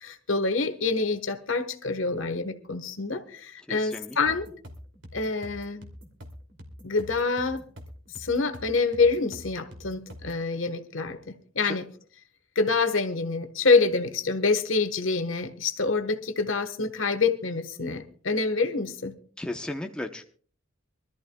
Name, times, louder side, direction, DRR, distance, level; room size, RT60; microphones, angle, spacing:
voice 1, 0.0-4.5 5.1-5.9 6.8-7.6 8.2-11.8 12.5-19.2, left 4 dB, 70° left, 1.3 m, -26 dB
voice 2, 3.7-4.2 11.6-11.8 19.4-20.2, left 1 dB, 5° left, 0.8 m, -35 dB
sound 1, 4.3-10.4, equal, 65° right, 2.7 m, -45 dB
24.5 x 13.5 x 2.3 m
head